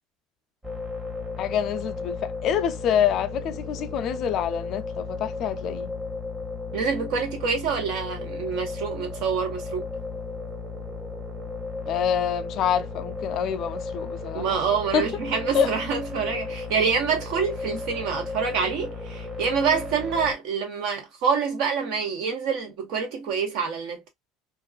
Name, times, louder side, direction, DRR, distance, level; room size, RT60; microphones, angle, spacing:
sound 1, 0.6-20.3, left 3 dB, 15° right, 0.8 m, -34 dB
voice 1, 1.4-5.9 11.9-14.6 14.9-15.1 15.5-15.7, left 8 dB, 50° left, 0.3 m, -26 dB
voice 2, 6.7-9.9 14.3-24.1, right 6 dB, 70° right, 1.0 m, -26 dB
2.4 x 2.3 x 2.2 m
supercardioid pair, 120°, 0 cm